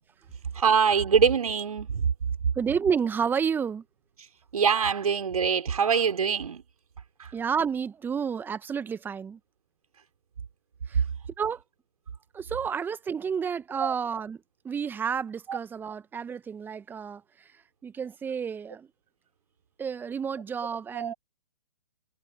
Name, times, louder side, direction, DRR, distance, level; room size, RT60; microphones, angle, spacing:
voice 1, 0.5-2.1 4.5-6.6 7.2-7.3 13.8-13.9 15.5-15.6 20.9-21.1, right 6 dB, 65° right, 4.2 m, -24 dB
voice 2, 2.5-3.8 7.3-9.4 10.9-11.0 11.4-11.6 12.3-14.4 14.6-17.5 17.8-18.9 19.8-21.1, right 6 dB, 10° right, 1.4 m, -30 dB
figure-of-eight pair, 130°, 20 cm